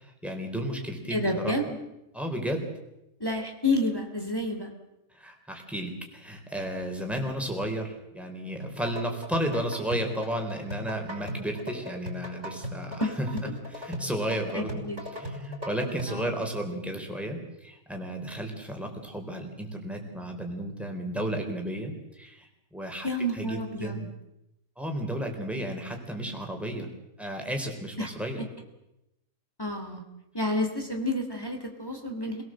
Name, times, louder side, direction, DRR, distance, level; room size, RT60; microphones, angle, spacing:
voice 1, 0.0-1.5 2.1-2.7 5.1-13.3 13.8-14.8 15.1-23.1 23.4-24.1 24.8-26.9 27.2-28.4, right 1 dB, ahead, 2 dB, 4.0 m, -33 dB
voice 2, 1.1-1.6 3.2-4.7 13.0-13.1 13.4-13.6 14.5-15.1 16.1-16.3 23.0-24.1 28.0-28.1 29.6-30.0 30.3-32.4, left 1 dB, 15° left, 3 dB, 2.8 m, -29 dB
sound 1, 8.6-16.3, left 1 dB, 55° right, 5.8 m, -38 dB
26.5 x 18.5 x 7.7 m, 0.91 s
omnidirectional pair, 1.5 m